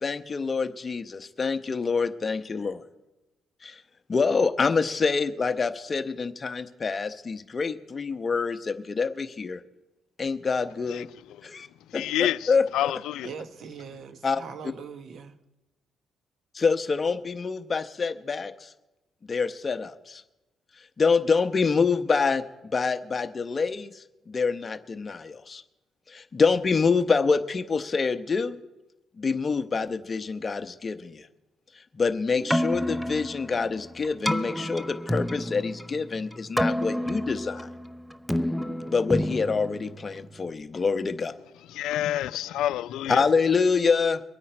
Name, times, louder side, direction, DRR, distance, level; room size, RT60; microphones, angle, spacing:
voice 1, 0.0-2.8 3.6-3.8 4.1-9.6 10.2-11.1 11.4-11.7 11.9-12.6 14.2-14.4 16.5-18.7 19.3-20.2 21.0-22.4 22.7-25.6 26.1-28.6 29.2-31.3 31.9-37.7 38.9-41.3 43.1-44.2, left 5 dB, 35° left, 0.9 m, -26 dB
voice 2, 11.9-13.3 41.7-43.3, left 13 dB, 85° left, 0.4 m, -28 dB
voice 3, 13.2-15.4, right 6 dB, 60° right, 1.1 m, -41 dB
Keyboard (musical), 32.3-40.5, equal, ahead, 0.5 m, -30 dB
23.5 x 9.1 x 4.5 m
cardioid pair, 90°, 0 cm